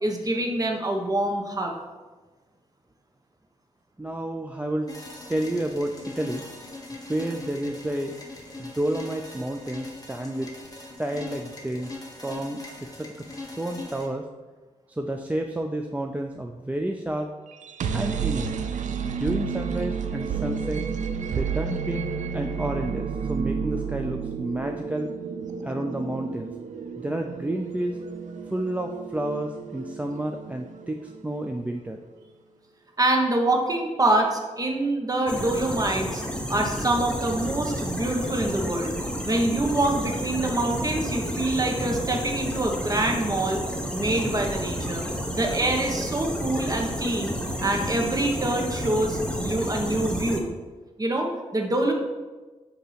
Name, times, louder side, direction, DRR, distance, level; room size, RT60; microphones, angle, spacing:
voice 1, 0.0-1.7 33.0-36.2 36.5-38.9 39.2-43.6 43.9-45.0 45.3-50.5 51.0-51.9, right 1 dB, 30° right, 1 dB, 1.1 m, -25 dB
voice 2, 4.0-4.9 5.3-6.5 7.1-8.2 8.6-10.5 11.0-14.3 14.9-17.3 17.9-18.5 19.0-20.8 21.3-25.1 25.6-26.5 27.0-28.0 28.5-32.0, right 1 dB, 10° right, 3 dB, 0.4 m, -30 dB
sound 1, 4.9-14.1, left 2 dB, 30° left, 1.3 m, -40 dB
sound 2, 17.5-31.4, right 6 dB, 80° right, 0.5 m, -31 dB
sound 3, 35.3-50.4, equal, 10° left, 0.9 m, -31 dB
8.4 x 2.9 x 5.8 m, 1.3 s
wide cardioid pair, 95°, 13 cm